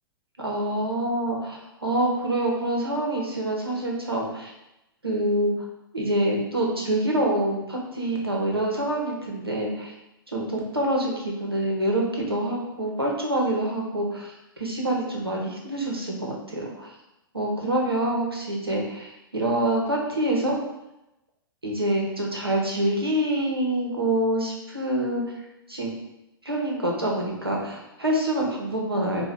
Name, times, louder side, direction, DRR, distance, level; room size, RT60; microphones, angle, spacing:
voice 1, 0.4-4.5 5.0-5.5 5.9-9.9 10.3-16.9 17.3-20.6 21.6-25.2 25.7-25.9 26.4-29.3, right 1 dB, 85° right, -2 dB, 1.0 m, -26 dB
4.4 x 2.4 x 3.6 m, 0.91 s
figure-of-eight pair, 105°, 12 cm